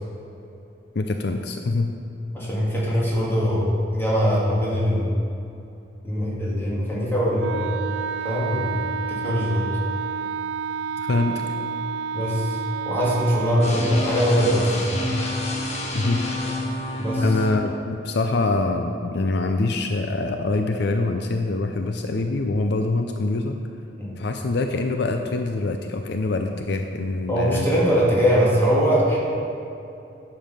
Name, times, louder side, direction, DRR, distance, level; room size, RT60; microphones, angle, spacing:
voice 1, 0.9-1.9 11.0-11.4 15.9-16.2 17.2-23.6 24.2-27.7, left 2 dB, 65° left, 5 dB, 0.5 m, -24 dB
voice 2, 2.3-3.7 3.9-5.1 6.0-7.8 8.2-8.8 9.1-9.6 12.1-12.6 12.9-15.1 17.0-17.2 24.0-24.1 27.3-29.2, equal, 15° left, -7 dB, 2.6 m, -22 dB
Wind instrument woodwind instrument, 7.4-13.8, right 6 dB, 90° right, 0.3 m, -30 dB
sound 1, 13.6-17.6, left 2 dB, 40° left, 1.3 m, -28 dB
10.5 x 7.1 x 5.6 m, 2.7 s
head